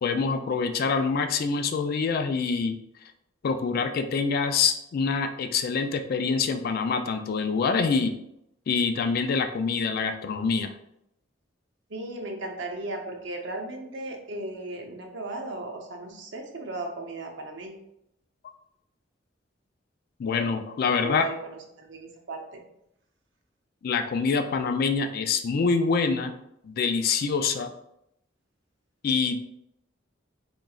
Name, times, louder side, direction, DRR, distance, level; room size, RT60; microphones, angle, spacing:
voice 1, 0.0-2.8 3.4-8.1 8.7-10.7 20.2-21.2 23.8-26.3 26.6-27.7 29.0-29.4, left 5 dB, 55° left, 7 dB, 0.3 m, -25 dB
voice 2, 11.9-17.9 21.0-22.6, right 2 dB, 70° right, 2 dB, 0.7 m, -36 dB
3.6 x 3.0 x 2.3 m, 0.79 s
head